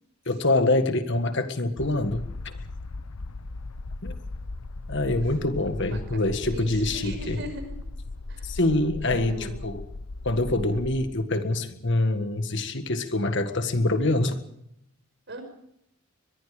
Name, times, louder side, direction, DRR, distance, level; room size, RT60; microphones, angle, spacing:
voice 1, 0.3-2.5 4.0-4.2 4.9-7.4 8.4-9.8 10.2-14.4, left 2 dB, 55° left, 8 dB, 1.7 m, -25 dB
sound 1, 1.8-11.1, left 2 dB, 85° left, 0.9 m, -37 dB
voice 2, 5.7-7.8 8.3-8.5 9.0-9.6 15.3-15.4, right 1 dB, 50° right, 7 dB, 5.6 m, -39 dB
23.0 x 22.5 x 5.1 m, 0.74 s
head